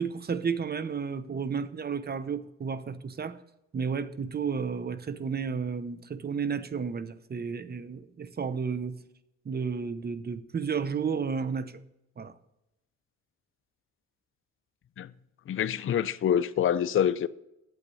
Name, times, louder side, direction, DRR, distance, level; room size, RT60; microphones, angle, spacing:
voice 1, 0.0-3.4 3.7-9.0 9.4-11.7 12.2-12.3, right 6 dB, 30° right, 0.8 m, -32 dB
voice 2, 15.5-17.3, left 9 dB, 45° left, 0.6 m, -26 dB
9.0 x 7.7 x 7.0 m
cardioid pair, 90°, 30 cm